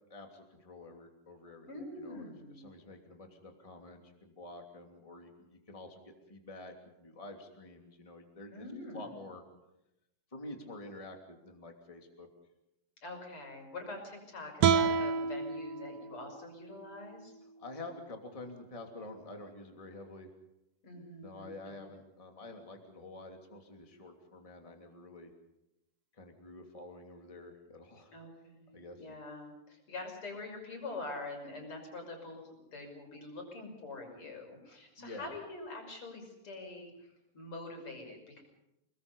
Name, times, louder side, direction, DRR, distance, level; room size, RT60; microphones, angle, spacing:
voice 1, 0.1-1.7 1.9-8.7 8.9-9.4 10.3-12.3 17.6-20.3 21.2-25.3 26.1-28.1 28.7-29.0 35.0-35.3, left 2 dB, 10° left, 3 dB, 2.6 m, -48 dB
voice 2, 1.6-2.7 8.5-9.1 13.0-17.3 20.8-21.7 28.1-38.4, left 2 dB, 40° left, 2 dB, 6.7 m, -45 dB
sound 1, 14.6-17.8, right 6 dB, 65° right, 1.7 m, -31 dB
29.5 x 20.5 x 5.5 m, 0.88 s
omnidirectional pair, 3.8 m